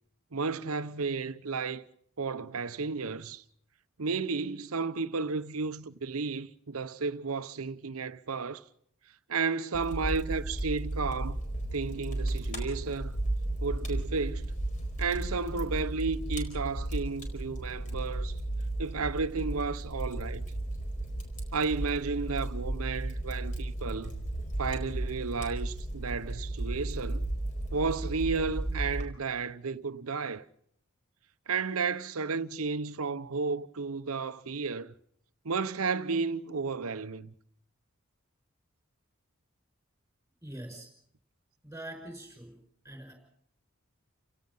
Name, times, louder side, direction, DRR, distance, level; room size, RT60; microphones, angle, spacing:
voice 1, 0.3-1.8 2.2-3.4 4.0-8.6 9.3-11.4 11.7-13.1 13.6-14.5 15.0-18.3 18.8-20.4 21.5-24.1 24.6-27.3 27.7-30.4 31.5-34.9 35.4-37.3, right 4 dB, 90° right, 0.8 m, -33 dB
Fire, 9.7-29.0, right 1 dB, 35° left, 4.5 m, -34 dB
voice 2, 40.4-40.9 41.6-42.5 42.8-43.1, right 1 dB, 10° right, 5.7 m, -43 dB
29.5 x 17.0 x 5.5 m
head